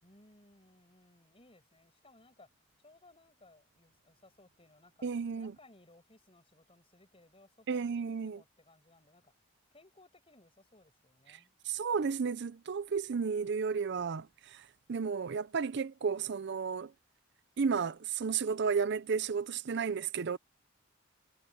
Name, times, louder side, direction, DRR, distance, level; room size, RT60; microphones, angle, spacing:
voice 1, 0.0-2.5 2.8-5.1 5.3-9.3 9.7-11.5, left 2 dB, 25° left, 7.7 m, -62 dB
voice 2, 5.0-5.5 7.7-8.4 11.3-11.4 11.6-16.9 17.6-20.4, right 5 dB, 55° right, 0.5 m, -33 dB
head